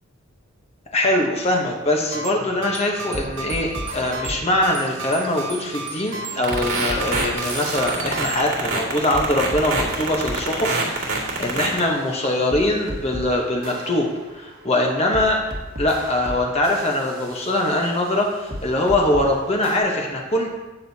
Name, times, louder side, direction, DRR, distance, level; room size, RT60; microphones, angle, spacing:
voice 1, 0.9-14.1 14.3-15.4 15.8-20.5, left 1 dB, 30° left, 0 dB, 0.9 m, -22 dB
sound 1, 2.0-8.5, right 3 dB, 60° right, 1.0 m, -33 dB
sound 2, 2.9-7.3 7.6-13.3 13.6-19.3 19.6-19.8, equal, 45° right, 1.4 m, -36 dB
sound 3, 6.4-11.8, right 4 dB, 85° right, 2.2 m, -24 dB
16.5 x 6.3 x 2.8 m, 1.1 s
head